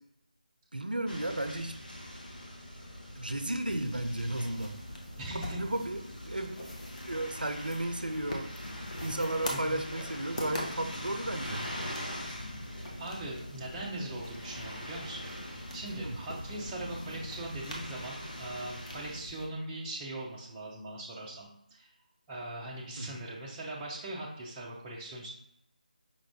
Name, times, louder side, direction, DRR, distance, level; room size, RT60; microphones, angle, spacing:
voice 1, 0.7-1.8 3.1-4.8 5.3-6.7 7.1-8.5 9.0-11.7 16.0-16.2 23.0-23.1, right 1 dB, 85° right, 7 dB, 0.5 m, -34 dB
sound 1, 1.1-19.2, equal, 75° left, 1.1 m, -43 dB
sound 2, 3.7-19.5, left 1 dB, 50° left, 0.9 m, -44 dB
voice 2, 5.2-5.6 9.5-9.8 13.0-21.9 22.3-25.3, right 1 dB, 10° right, -4 dB, 0.5 m, -40 dB
5.2 x 2.4 x 3.4 m, 0.79 s
figure-of-eight pair, 160°, 5 cm